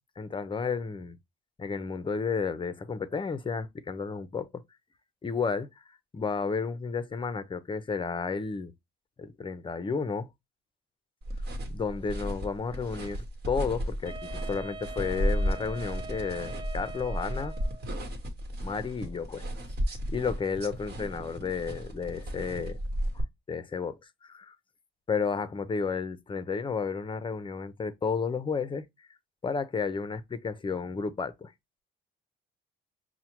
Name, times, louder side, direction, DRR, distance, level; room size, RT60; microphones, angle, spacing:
voice 1, 0.2-1.2 1.6-4.5 5.2-5.8 6.1-8.7 9.2-10.3 11.7-17.5 18.6-19.5 19.9-22.8 23.5-24.5 25.1-28.8 29.4-31.5, left 5 dB, 25° left, 0.5 m, -32 dB
sound 1, 11.2-23.2, equal, 55° right, 1.1 m, -34 dB
Wind instrument woodwind instrument, 14.0-17.9, right 3 dB, 25° right, 0.3 m, -43 dB
5.6 x 2.1 x 2.9 m
cardioid pair, 90°, 20 cm